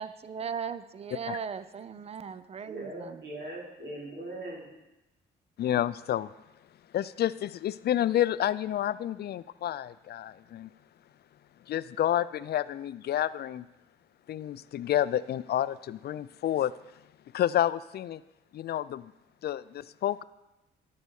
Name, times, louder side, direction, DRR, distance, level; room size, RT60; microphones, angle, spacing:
voice 1, 0.0-3.2, right 7 dB, 30° right, 14 dB, 0.5 m, -38 dB
voice 2, 2.7-4.7, right 1 dB, 65° right, -5 dB, 4.6 m, -40 dB
voice 3, 5.6-6.3 6.9-10.7 11.7-13.7 14.3-16.7 17.3-18.2 18.5-19.1 19.4-20.2, left 11 dB, 55° left, 17 dB, 0.4 m, -29 dB
12.0 x 5.6 x 6.4 m, 0.97 s
cardioid pair, 90°, 20 cm